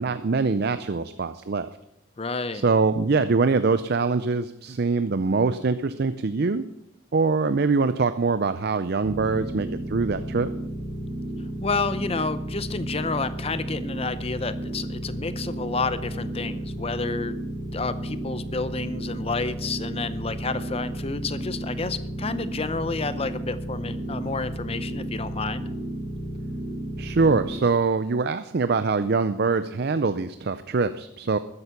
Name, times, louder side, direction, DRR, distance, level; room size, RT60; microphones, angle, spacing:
voice 1, 0.0-1.7 2.5-6.6 7.1-10.5 27.0-31.4, right 4 dB, 50° right, 12 dB, 0.5 m, -23 dB
voice 2, 2.2-2.7 11.6-17.4 17.7-25.7, left 3 dB, 30° left, 13 dB, 0.7 m, -30 dB
sound 1, 9.0-27.6, right 1 dB, 15° right, 2.6 m, -33 dB
13.5 x 11.0 x 5.9 m, 0.81 s
head